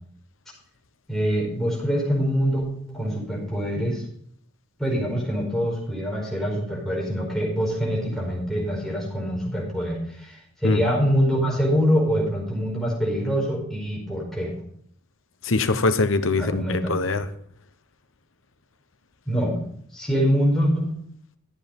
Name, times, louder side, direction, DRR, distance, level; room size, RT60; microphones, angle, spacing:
voice 1, 1.1-4.0 4.8-14.5 16.4-16.9 19.3-19.6 19.9-20.9, equal, ahead, 4.7 m, -24 dB
voice 2, 15.4-17.3, left 3 dB, 70° left, 0.9 m, -23 dB
13.0 x 8.1 x 5.3 m
head